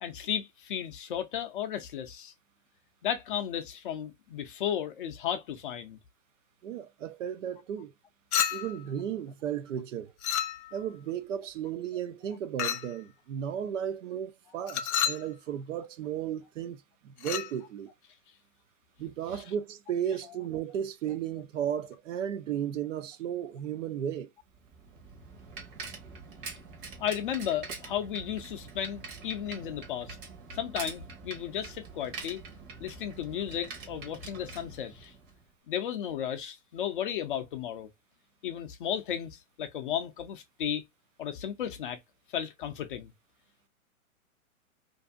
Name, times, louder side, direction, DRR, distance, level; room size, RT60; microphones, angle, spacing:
voice 1, 0.0-2.3 3.0-6.0 27.0-30.2 30.5-32.4 32.8-35.1 35.7-37.9 38.4-40.8 41.2-42.0 42.3-43.1, left 9 dB, 40° left, 0.5 m, -34 dB
voice 2, 6.6-7.9 8.5-10.1 10.7-17.9 19.0-24.3, right 9 dB, 60° right, 0.5 m, -34 dB
Chink clink, 8.3-8.9 10.2-10.9 12.6-13.0 14.7-15.3 17.2-17.5, left 9 dB, 80° left, 0.7 m, -30 dB
Bicycle, 24.5-35.4, right 4 dB, 40° right, 1.0 m, -45 dB
2.6 x 2.5 x 2.3 m
hypercardioid pair, 135°, 43 cm